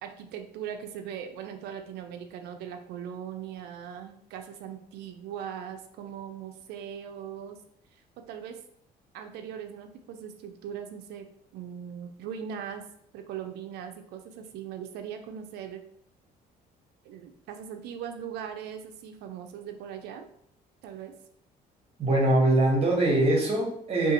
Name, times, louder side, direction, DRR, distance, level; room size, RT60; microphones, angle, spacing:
voice 1, 0.0-7.6 8.3-8.6 9.1-12.9 13.1-15.8 17.0-20.3 20.8-21.1, right 8 dB, 75° right, 6 dB, 0.4 m, -40 dB
voice 2, 22.0-24.1, right 1 dB, 35° right, -1 dB, 1.0 m, -23 dB
2.5 x 2.4 x 2.8 m, 0.68 s
cardioid pair, 110°, 17 cm